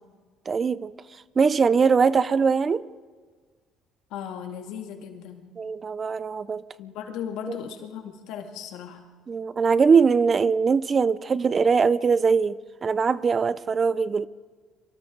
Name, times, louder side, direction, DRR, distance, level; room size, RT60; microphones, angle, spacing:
voice 1, 0.5-0.9 1.4-2.9 5.6-6.6 9.3-14.3, right 5 dB, 30° right, 18 dB, 0.5 m, -21 dB
voice 2, 4.1-5.4 6.8-9.1, left 8 dB, 80° left, 4 dB, 2.3 m, -36 dB
29.5 x 24.5 x 3.9 m, 1.5 s
cardioid pair, 110°, 0 cm